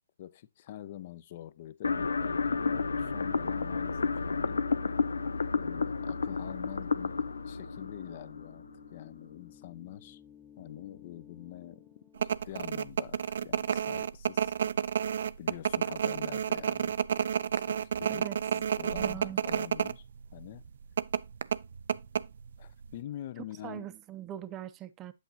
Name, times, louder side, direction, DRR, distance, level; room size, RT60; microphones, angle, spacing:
voice 1, 0.2-4.6 5.5-8.6 8.9-10.2 10.6-11.9 12.2-14.5 15.4-17.0 17.5-18.3 18.5-20.1 20.3-20.6 22.6-23.9, left 12 dB, 40° left, 0.7 m, -45 dB
sound 1, 1.8-8.9, left 4 dB, 90° left, 0.7 m, -31 dB
sound 2, 1.9-13.4, left 6 dB, 5° right, 1.1 m, -55 dB
sound 3, 12.2-19.9 20.2-20.3 21.0-22.6 22.9-23.0, right 8 dB, 60° right, 0.4 m, -30 dB
voice 2, 18.8-19.4 23.4-25.1, right 12 dB, 20° right, 0.6 m, -41 dB
8.3 x 8.0 x 2.8 m
hypercardioid pair, 145°, 0 cm